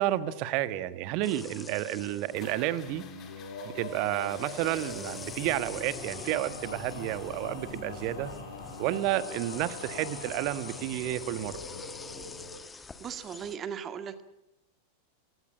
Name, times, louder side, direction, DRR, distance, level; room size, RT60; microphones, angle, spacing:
voice 1, 0.0-3.0 3.6-8.3 8.8-11.6, right 14 dB, 45° right, 14 dB, 1.4 m, -31 dB
sound 1, 1.2-3.0 3.8-13.6, left 4 dB, 15° left, 1.4 m, -46 dB
sound 2, 2.3-12.5, left 5 dB, 30° left, 3.7 m, -49 dB
Male singing, 2.8-12.6, left 3 dB, 70° left, 7.9 m, -44 dB
voice 2, 12.7-14.2, right 7 dB, 25° right, 10 dB, 1.8 m, -38 dB
23.0 x 18.0 x 8.9 m, 0.92 s
figure-of-eight pair, 90°, 0 cm